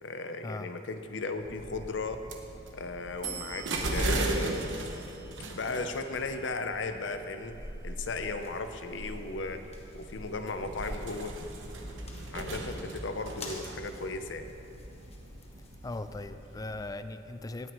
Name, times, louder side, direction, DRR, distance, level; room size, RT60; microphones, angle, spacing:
voice 1, 0.0-2.2 2.7-4.6 5.5-9.6 9.9-11.3 12.3-14.5, left 3 dB, 80° left, 7 dB, 0.7 m, -36 dB
sound 1, 1.4-16.8, right 2 dB, 85° right, 1.1 m, -38 dB
sound 2, 8.1-16.3, left 3 dB, 35° left, 1.2 m, -52 dB
voice 2, 15.8-17.7, left 2 dB, 20° left, 10 dB, 0.4 m, -38 dB
17.5 x 9.1 x 3.1 m, 2.7 s
head